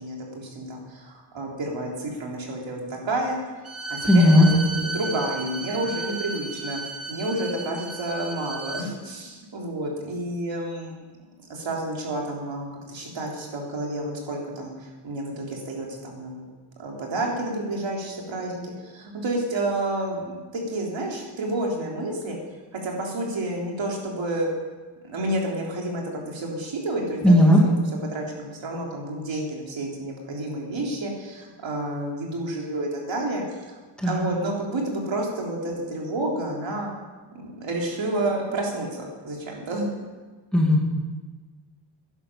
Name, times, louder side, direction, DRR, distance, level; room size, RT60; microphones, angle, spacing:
voice 1, 0.0-3.5 3.9-6.8 7.1-10.9 11.5-16.5 16.8-22.4 22.7-24.5 25.0-27.7 28.1-33.7 34.0-36.9 37.3-39.9, right 1 dB, 70° right, -1 dB, 3.6 m, -30 dB
Bowed string instrument, 3.6-8.9, right 2 dB, 30° right, 1.3 m, -34 dB
voice 2, 4.0-4.5 27.2-27.6 34.0-34.2 40.5-40.9, left 1 dB, ahead, -2 dB, 2.7 m, -16 dB
16.5 x 11.0 x 6.9 m, 1.3 s
wide cardioid pair, 170°, 47 cm